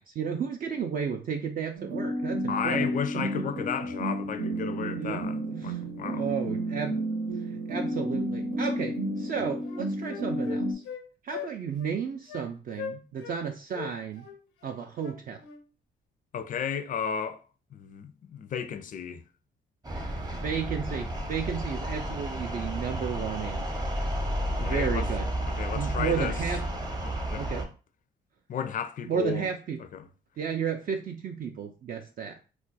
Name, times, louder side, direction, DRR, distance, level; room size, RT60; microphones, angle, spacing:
voice 1, 0.0-2.9 3.1-3.5 5.0-6.9 7.4-10.8 11.2-14.3 14.6-15.4 20.3-23.9 24.6-25.3 25.7-26.6 27.4-27.7 29.1-29.8 30.4-32.4, right 7 dB, 45° right, 0.4 m, -33 dB
sound 1, 1.8-10.7, right 1 dB, 90° right, 0.9 m, -31 dB
voice 2, 2.5-6.3 16.3-17.4 17.7-19.2 24.5-25.1 25.5-26.4 27.0-27.5 28.5-29.5 29.8-30.1, left 7 dB, 45° left, 0.4 m, -33 dB
Wind instrument woodwind instrument, 8.8-9.0 9.3-11.0 11.3-11.5 11.8-11.9 12.3-12.5 12.8-13.4 13.7-15.6, left 7 dB, 90° left, 0.6 m, -40 dB
sound 2, 19.8-27.6, right 1 dB, 20° right, 0.7 m, -32 dB
2.4 x 2.2 x 3.9 m
cardioid pair, 90°, 20 cm